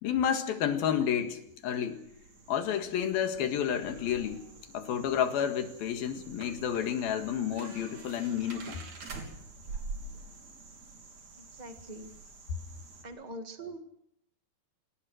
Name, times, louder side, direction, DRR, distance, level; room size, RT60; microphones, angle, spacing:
voice 1, 0.0-2.0 2.5-4.4 4.7-8.8, left 9 dB, 75° left, 3.6 m, -30 dB
sound 1, 0.6-13.0, right 3 dB, 50° right, 4.6 m, -47 dB
sound 2, 1.9-5.2, equal, 55° left, 9.1 m, -55 dB
voice 2, 11.3-12.1 13.0-13.8, right 1 dB, 35° right, 0.7 m, -43 dB
26.5 x 19.5 x 6.4 m
omnidirectional pair, 4.3 m